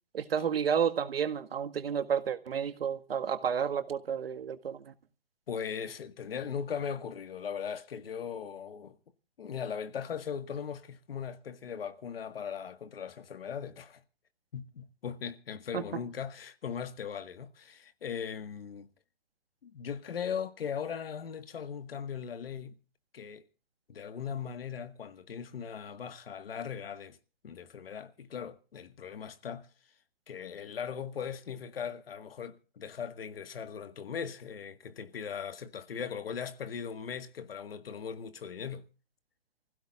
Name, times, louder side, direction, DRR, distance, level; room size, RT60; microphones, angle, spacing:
voice 1, 0.1-4.9 15.7-15.8, right 7 dB, 75° right, 1.8 m, -31 dB
voice 2, 5.5-9.0 9.4-14.0 14.5-18.9 19.6-22.8 23.1-23.4 23.9-27.2 27.4-29.7 30.3-38.9, left 7 dB, 70° left, 1.7 m, -39 dB
29.0 x 16.0 x 2.4 m
hypercardioid pair, 145°, 30 cm